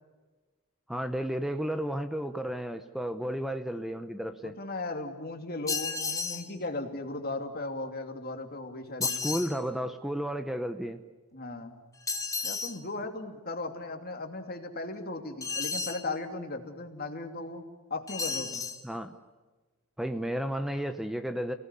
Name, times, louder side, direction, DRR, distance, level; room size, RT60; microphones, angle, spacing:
voice 1, 0.9-4.5 9.0-11.0 18.8-19.1 20.0-21.5, equal, ahead, 8 dB, 0.8 m, -33 dB
voice 2, 4.4-9.2 11.3-11.8 12.4-17.6 17.9-18.7, left 2 dB, 45° left, 5 dB, 2.8 m, -37 dB
sound 1, 5.7-6.5 9.0-9.5 12.1-12.8 15.4-16.0 18.1-18.8, left 4 dB, 15° left, 1.5 m, -32 dB
29.5 x 18.5 x 9.9 m, 1.3 s
head